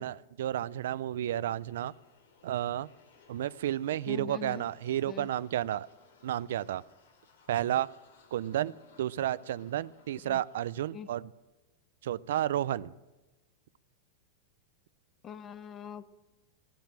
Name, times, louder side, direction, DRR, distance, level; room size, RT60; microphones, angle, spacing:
voice 1, 0.0-1.9 2.4-2.9 3.3-5.9 6.2-6.8 7.5-7.9 8.3-11.3 12.0-12.9, right 12 dB, 80° right, 19 dB, 0.4 m, -32 dB
sound 1, 1.6-10.7, left 4 dB, 80° left, 2.7 m, -62 dB
voice 2, 4.1-4.6 5.1-5.3 10.2-10.4 10.9-11.1 15.2-16.2, left 8 dB, 25° left, 15 dB, 0.7 m, -43 dB
16.5 x 10.5 x 7.4 m, 1.1 s
supercardioid pair, 150°, 0 cm